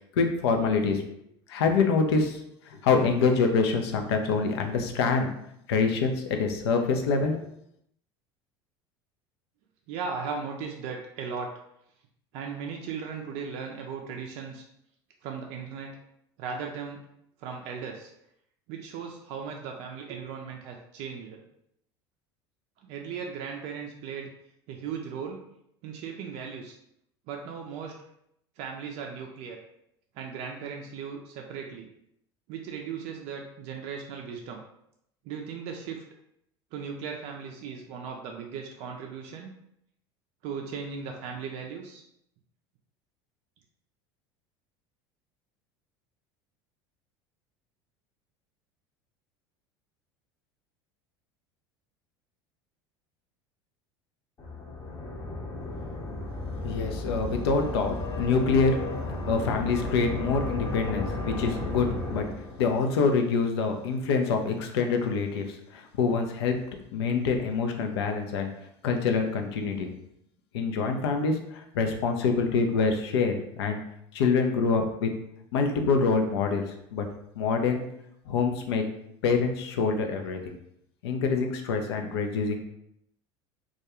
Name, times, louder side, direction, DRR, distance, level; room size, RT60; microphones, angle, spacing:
voice 1, 0.2-1.0 1.5-2.4 2.7-5.3 5.7-7.3 56.6-58.8 59.3-62.3 62.6-66.6 66.9-68.5 68.8-69.9 70.5-73.8 74.1-75.1 75.5-76.6 76.9-77.0 77.4-77.8 78.3-78.8 79.2-80.6 81.0-82.6, left 4 dB, 75° left, 5 dB, 0.4 m, -25 dB
voice 2, 9.9-11.5 12.3-14.6 15.2-16.0 16.4-17.0 17.4-18.1 18.7-21.4 22.8-24.3 24.7-25.4 25.8-26.8 27.3-28.0 28.6-29.6 30.2-31.9 32.5-34.6 35.2-36.0 36.7-39.5 40.4-42.0, right 6 dB, 55° right, 1 dB, 0.4 m, -37 dB
sound 1, 54.4-62.9, left 2 dB, 30° left, 0.7 m, -34 dB
2.3 x 2.2 x 2.9 m, 0.76 s
hypercardioid pair, 75°, 14 cm